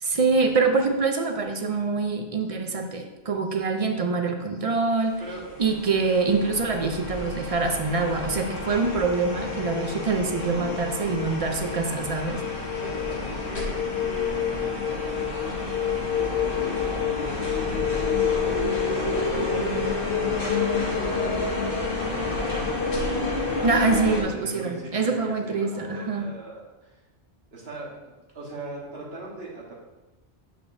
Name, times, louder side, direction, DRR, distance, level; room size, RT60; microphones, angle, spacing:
voice 1, 0.0-5.2 5.6-12.4 23.6-26.3, right 4 dB, 40° right, 4 dB, 0.6 m, -25 dB
voice 2, 4.8-5.5 10.6-10.7 12.5-14.9 16.2-23.1 24.3-27.0 27.5-29.8, right 2 dB, 70° right, -3 dB, 1.7 m, -41 dB
sound 1, 5.3-24.2, left 4 dB, 55° left, 1.6 m, -28 dB
sound 2, 6.8-8.9 9.2-9.8 12.0-14.1 16.9-19.0 19.4-19.9 21.4-23.5 23.7-23.8, left 3 dB, 80° left, 1.4 m, -43 dB
8.4 x 5.0 x 2.7 m, 1.1 s
omnidirectional pair, 1.1 m